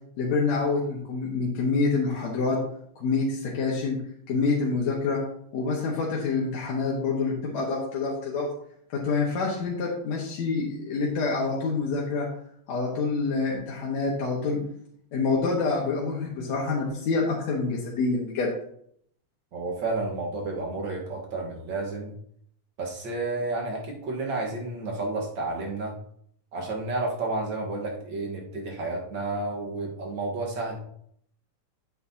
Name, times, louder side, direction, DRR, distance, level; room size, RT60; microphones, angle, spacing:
voice 1, 0.2-2.6 3.0-4.0 4.3-5.2 5.5-8.5 8.9-12.3 12.7-14.6 15.1-18.5, left 4 dB, 60° left, -4 dB, 2.4 m, -27 dB
voice 2, 19.5-22.1 22.8-25.9 26.5-30.8, right 2 dB, 50° right, -1 dB, 1.6 m, -31 dB
8.6 x 8.4 x 2.8 m, 0.67 s
omnidirectional pair, 3.7 m